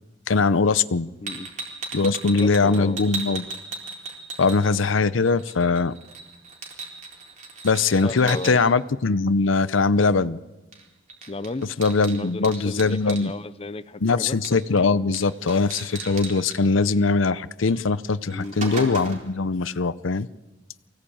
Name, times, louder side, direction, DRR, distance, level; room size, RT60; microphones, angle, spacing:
voice 1, 0.3-1.1 1.9-3.5 4.4-5.9 7.6-10.4 11.8-13.3 14.0-20.3, left 4 dB, 85° left, 16 dB, 0.7 m, -21 dB
sound 1, 1.3-5.0 5.3-8.5 10.7-10.8 11.1-13.2 14.4-14.8 15.1-15.2 15.5-16.6 17.7-17.8 18.2-19.3, right 3 dB, 40° right, 4.0 m, -36 dB
voice 2, 2.3-3.0 8.0-8.6 11.3-11.7 12.1-14.4 18.3-18.5, left 2 dB, 30° left, 14 dB, 0.7 m, -34 dB
24.0 x 17.0 x 8.7 m, 1.1 s
head